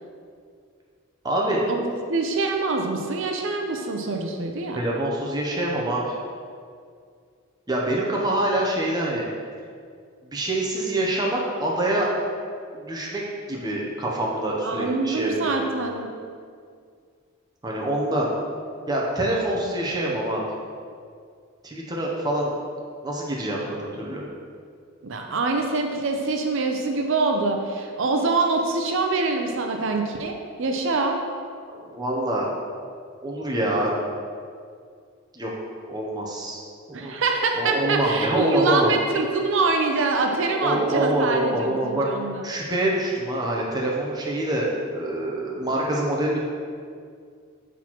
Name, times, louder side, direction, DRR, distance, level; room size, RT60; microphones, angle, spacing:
voice 1, 1.2-1.6 4.7-6.2 7.7-9.2 10.2-12.1 12.7-13.2 13.5-15.6 17.6-18.3 18.9-20.4 21.6-22.5 23.0-24.3 31.7-32.5 33.2-33.9 35.3-35.5 35.9-36.6 36.9-37.1 37.5-38.9 40.5-42.1 42.4-46.4, right 1 dB, 20° right, -3 dB, 0.6 m, -25 dB
voice 2, 2.1-4.8 14.6-16.1 25.0-31.2 36.9-42.4, right 3 dB, 60° right, 3 dB, 0.5 m, -25 dB
6.0 x 6.0 x 3.0 m, 2.2 s
head